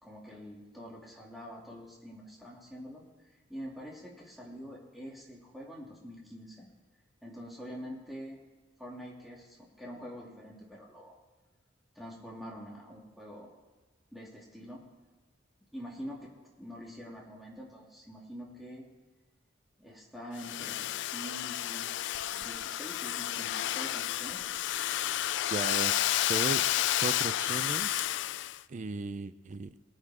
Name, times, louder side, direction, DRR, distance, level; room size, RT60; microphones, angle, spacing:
voice 1, 0.0-3.0 3.5-6.7 7.2-8.4 8.8-11.2 12.0-13.5 14.1-14.8 15.7-16.3 16.6-18.8 19.8-21.9 22.3-24.4, equal, ahead, -3 dB, 2.5 m, -45 dB
Domestic sounds home sounds, 20.4-28.6, left 13 dB, 65° left, 0.3 m, -31 dB
voice 2, 25.5-26.0 26.3-26.7 27.0-28.1 28.7-29.7, right 4 dB, 40° right, 14 dB, 0.5 m, -36 dB
20.0 x 8.9 x 4.9 m, 1.2 s
head